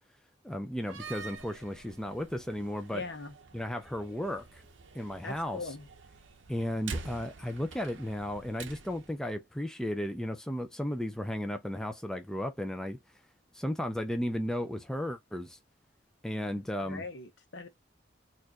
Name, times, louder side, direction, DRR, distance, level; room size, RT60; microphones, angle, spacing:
voice 1, 0.4-3.0 3.5-4.6 4.9-5.8 6.5-13.0 13.5-15.6 16.2-17.1, left 1 dB, 5° left, 0.4 m, -34 dB
Slam, 0.7-9.2, right 4 dB, 80° right, 0.7 m, -46 dB
voice 2, 2.9-3.3 5.2-5.9 16.8-17.7, left 3 dB, 70° left, 0.8 m, -40 dB
4.3 x 2.5 x 2.9 m
head